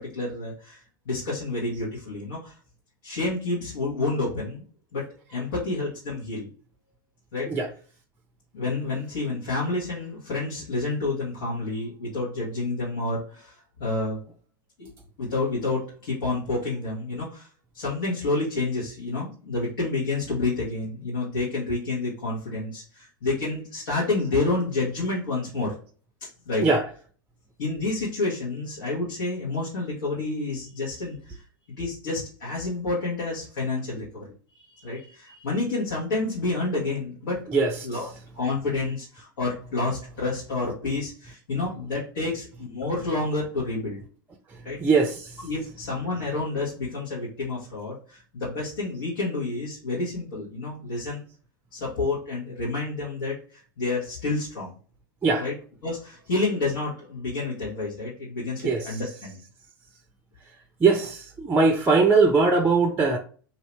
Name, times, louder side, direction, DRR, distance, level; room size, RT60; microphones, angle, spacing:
voice 1, 0.0-2.6 3.0-4.6 4.9-5.0 5.3-6.5 7.3-7.5 8.5-14.2 14.8-14.9 15.2-17.5 17.7-25.7 26.2-26.7 27.6-31.4 31.8-34.2 34.5-37.4 37.8-38.1 38.3-44.0 44.7-44.8 45.4-51.2 51.7-54.7 55.4-55.5 55.8-59.4, left 3 dB, 65° left, 1.6 m, -29 dB
voice 2, 44.8-45.4 55.2-55.4 58.6-58.8 60.8-63.2, right 4 dB, 15° right, 0.5 m, -20 dB
2.8 x 2.7 x 3.3 m
hypercardioid pair, 95°, 11 cm